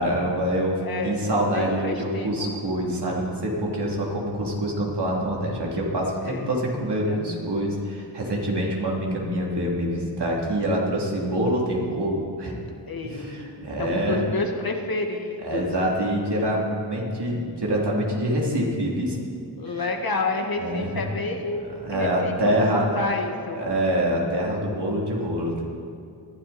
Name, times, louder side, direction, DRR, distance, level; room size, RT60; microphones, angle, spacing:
voice 1, 0.0-12.5 13.0-14.2 15.4-19.2 19.7-19.8 20.6-21.0 21.8-23.0 23.5-25.6, right 1 dB, 65° right, -2 dB, 3.2 m, -25 dB
voice 2, 0.8-2.5 6.2-6.5 7.1-7.2 12.9-15.7 19.6-22.3 22.7-23.6, left 3 dB, 55° left, 3 dB, 1.8 m, -30 dB
20.0 x 12.5 x 4.3 m, 2.5 s
wide cardioid pair, 70°, 43 cm